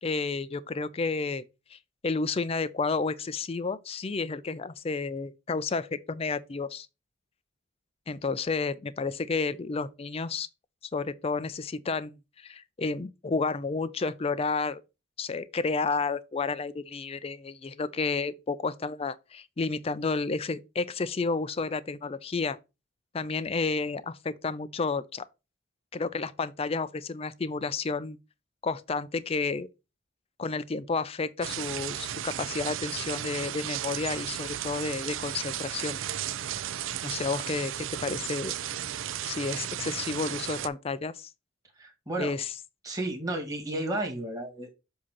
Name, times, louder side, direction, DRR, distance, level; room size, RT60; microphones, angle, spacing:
voice 1, 0.0-1.4 1.7-1.8 2.0-6.9 8.1-10.5 10.9-14.8 15.2-22.6 23.1-25.3 25.9-28.2 28.6-29.7 30.4-36.0 37.0-38.6 39.2-41.3 42.2-42.5, left 4 dB, 30° left, 0.4 m, -31 dB
sound 1, 31.4-40.7, right 11 dB, 70° right, 0.4 m, -34 dB
voice 2, 41.8-42.3 42.8-44.7, right 1 dB, 20° right, 2.0 m, -32 dB
7.5 x 2.8 x 5.9 m
head